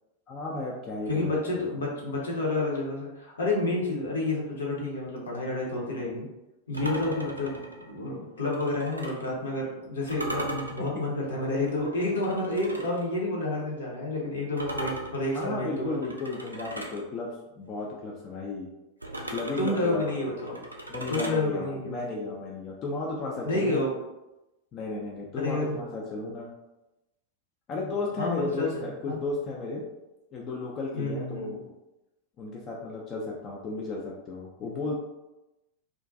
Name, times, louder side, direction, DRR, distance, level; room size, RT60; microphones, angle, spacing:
voice 1, 0.3-1.5 6.8-7.2 15.3-17.3 17.6-18.7 19.3-20.2 20.9-23.9 24.7-26.5 27.7-29.8 30.3-31.7 32.4-35.0, left 3 dB, 30° left, -3 dB, 0.4 m, -34 dB
voice 2, 1.1-6.3 6.7-16.0 19.6-20.6 21.1-22.0 23.4-23.9 25.4-25.8 28.2-28.7 29.1-29.2 31.0-31.5, left 2 dB, 65° left, -3 dB, 0.8 m, -29 dB
sound 1, 6.7-9.3 10.1-13.1 14.6-17.0 19.0-21.4, right 1 dB, 85° right, 0.3 m, -38 dB
2.4 x 2.2 x 2.5 m, 0.98 s
figure-of-eight pair, 90°, 0 cm